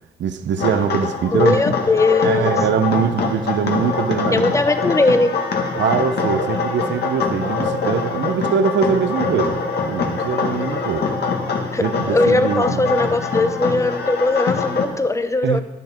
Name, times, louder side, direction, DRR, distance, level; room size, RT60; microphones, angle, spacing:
voice 1, 0.2-1.6 2.2-4.5 5.7-9.6 9.9-11.1 11.8-13.0 15.4-15.6, right 7 dB, 65° right, 10 dB, 1.0 m, -22 dB
sound 1, 0.6-14.8, left 4 dB, 55° left, 1.9 m, -23 dB
voice 2, 1.3-2.5 4.3-5.4 11.7-15.6, left 2 dB, 15° left, 10 dB, 0.9 m, -19 dB
11.0 x 10.5 x 4.6 m, 1.0 s
cardioid pair, 90°, 20 cm